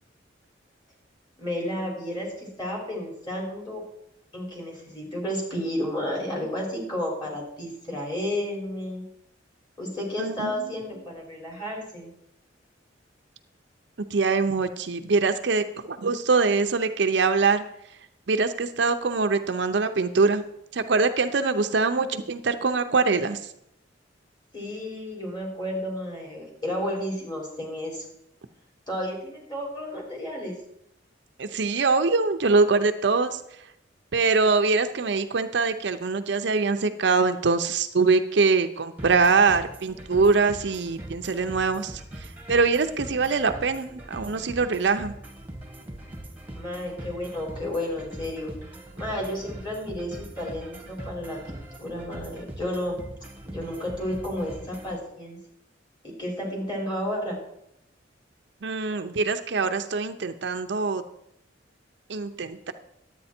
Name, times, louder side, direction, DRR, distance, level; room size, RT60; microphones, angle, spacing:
voice 1, 1.4-3.8 4.3-9.0 9.8-12.1 24.5-28.0 28.9-30.5 46.6-48.5 49.0-53.0 53.5-55.4 56.0-57.4, left 1 dB, 25° left, -1 dB, 3.6 m, -32 dB
voice 2, 10.2-10.7 14.1-17.6 18.3-20.4 20.7-23.5 31.4-33.4 34.1-45.1 58.6-61.0 62.1-62.7, right 4 dB, 65° right, 8 dB, 0.6 m, -23 dB
sound 1, 39.0-55.0, right 1 dB, 10° right, 1.3 m, -41 dB
11.0 x 8.6 x 4.3 m, 0.77 s
head